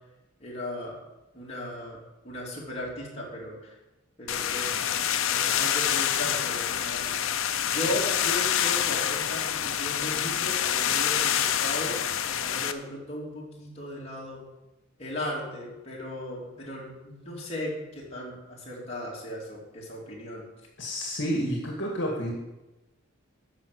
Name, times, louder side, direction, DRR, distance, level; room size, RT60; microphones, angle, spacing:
voice 1, 0.4-1.0 1.3-3.7 4.2-7.1 7.7-14.4 15.0-20.4, left 1 dB, 30° left, -5 dB, 3.1 m, -37 dB
sound 1, 4.3-12.7, left 9 dB, 80° left, 0.7 m, -27 dB
voice 2, 20.8-22.3, equal, 60° left, -1 dB, 1.9 m, -30 dB
13.5 x 5.5 x 6.5 m, 1.0 s
head